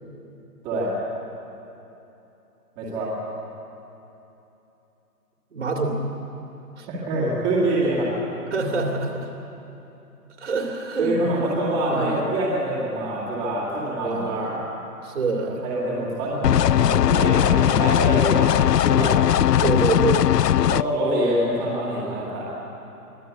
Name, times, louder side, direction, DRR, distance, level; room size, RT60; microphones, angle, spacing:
voice 1, 2.8-3.1 6.9-8.1 11.0-14.5 15.4-19.2 19.6-19.9 20.6-22.4, right 1 dB, 10° right, -7 dB, 2.2 m, -25 dB
voice 2, 5.5-6.0 6.8-6.9 8.5-9.3 10.4-11.2 11.9-12.2 14.0-14.5 15.0-15.6 19.6-20.3, right 3 dB, 45° right, 2 dB, 2.9 m, -26 dB
sound 1, 16.4-20.8, left 11 dB, 85° left, 0.5 m, -18 dB
24.0 x 15.0 x 8.3 m, 3.0 s
hypercardioid pair, 170°, 47 cm